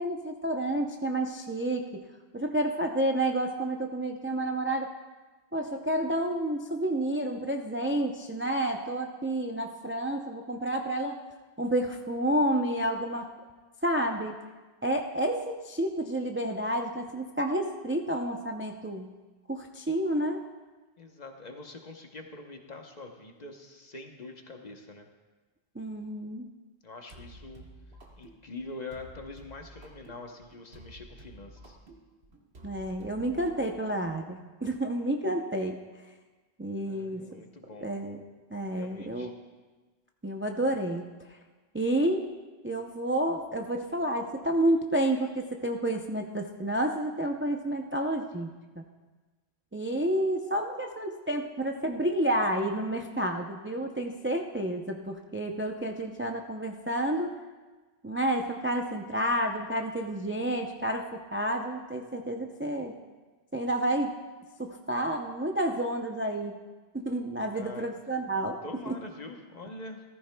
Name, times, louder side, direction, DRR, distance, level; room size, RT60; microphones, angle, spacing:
voice 1, 0.0-2.0 2.3-4.9 5.5-11.2 11.6-13.3 13.8-14.3 14.8-19.1 19.5-20.4 25.8-26.5 32.6-35.8 36.6-37.3 37.8-38.2 38.5-39.3 40.2-41.0 41.3-41.4 41.7-42.3 42.6-48.5 48.8-48.9 49.7-57.3 58.0-62.9 63.5-64.1 64.6-66.5 66.9-68.6 68.9-69.0, right 1 dB, 20° right, 3 dB, 0.4 m, -30 dB
voice 2, 21.0-25.1 26.8-27.6 28.2-31.8 36.9-37.9 38.7-39.3 67.5-67.9 68.6-70.0, left 2 dB, 45° left, 3 dB, 1.0 m, -44 dB
sound 1, 27.1-34.3, right 1 dB, 75° right, 1.6 m, -51 dB
15.0 x 14.0 x 2.2 m, 1.3 s
omnidirectional pair, 1.1 m